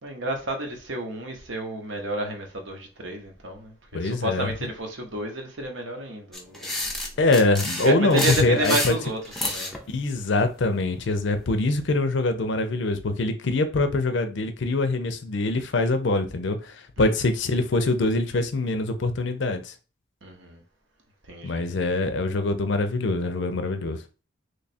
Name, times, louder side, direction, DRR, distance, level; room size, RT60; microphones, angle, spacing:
voice 1, 0.0-6.8 7.8-9.8 17.0-17.1 20.2-20.6 21.3-21.7, right 1 dB, 65° right, 0.9 m, -31 dB
voice 2, 3.9-4.5 7.2-8.9 9.9-19.7 21.4-24.0, left 2 dB, 60° left, 0.5 m, -24 dB
sound 1, 6.3-9.8, left 1 dB, ahead, 0.5 m, -29 dB
3.2 x 2.4 x 4.1 m
head